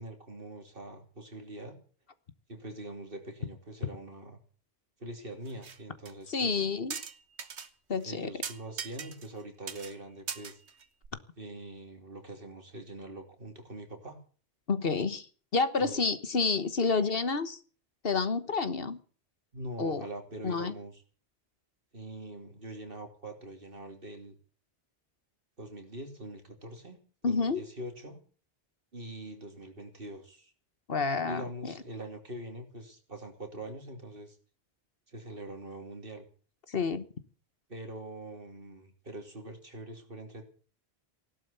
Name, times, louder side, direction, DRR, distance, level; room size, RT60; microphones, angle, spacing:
voice 1, 0.0-1.8 2.5-4.4 5.0-6.6 8.0-10.6 11.4-14.2 15.8-16.0 19.5-21.0 21.9-24.4 25.6-28.2 28.9-30.5 31.3-34.4 35.1-36.3 37.7-40.5, right 1 dB, 55° right, 5 dB, 3.3 m, -43 dB
sound 1, 5.5-5.8 6.1-6.2 6.9-7.7 8.0-8.1 8.4-9.4 9.7-9.9 10.3-11.1, right 6 dB, 85° right, 1.5 m, -39 dB
voice 2, 6.3-7.0 7.9-8.3 14.7-15.3 15.5-17.6 18.0-19.0 19.8-20.1 20.4-20.7 27.2-27.6 30.9-31.7 36.7-37.0, left 4 dB, 60° left, 13 dB, 1.4 m, -29 dB
17.0 x 12.0 x 6.9 m, 0.40 s
omnidirectional pair, 1.1 m